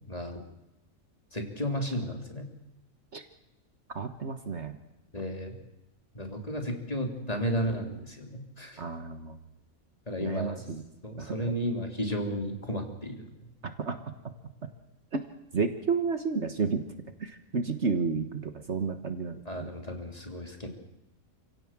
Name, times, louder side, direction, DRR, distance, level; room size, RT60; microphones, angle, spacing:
voice 1, 0.1-0.4 1.3-2.5 5.1-5.6 6.1-8.8 10.1-10.6 11.0-13.3 19.5-20.7, equal, 25° left, 3 dB, 3.4 m, -33 dB
voice 2, 4.0-4.7 8.8-9.4 10.2-10.8 11.2-11.3 13.6-14.0 15.1-15.2 15.5-16.8 17.2-19.7, right 5 dB, 55° right, 8 dB, 1.7 m, -31 dB
28.5 x 17.0 x 7.5 m, 0.95 s
omnidirectional pair, 1.5 m